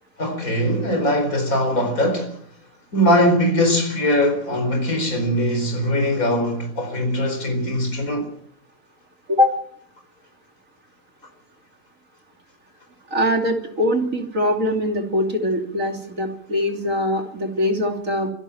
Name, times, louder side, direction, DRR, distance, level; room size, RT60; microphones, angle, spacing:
voice 1, 0.2-2.4 2.9-8.3, equal, 60° left, 4.9 m, -21 dB
voice 2, 13.1-18.3, left 1 dB, 55° right, 3.4 m, -22 dB
25.5 x 13.0 x 8.9 m
omnidirectional pair, 1.6 m